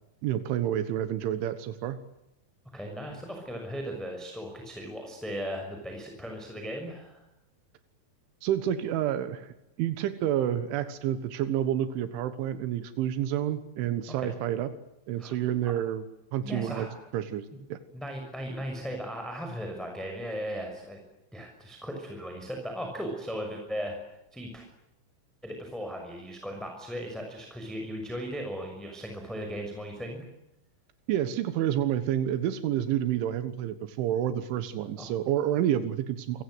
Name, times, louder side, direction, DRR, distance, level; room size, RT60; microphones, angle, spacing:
voice 1, 0.2-2.0 8.4-14.7 15.1-16.0 16.3-16.9 17.1-17.8 31.1-36.4, right 11 dB, 90° right, 11 dB, 3.8 m, -29 dB
voice 2, 2.7-7.2 14.1-14.3 15.2-15.4 15.6-15.7 16.4-17.0 17.5-17.6 17.9-21.0 21.3-24.0 24.3-24.6 25.4-30.3 35.0-35.1, equal, ahead, 2 dB, 5.6 m, -37 dB
29.0 x 24.5 x 8.0 m, 0.89 s
omnidirectional pair, 5.3 m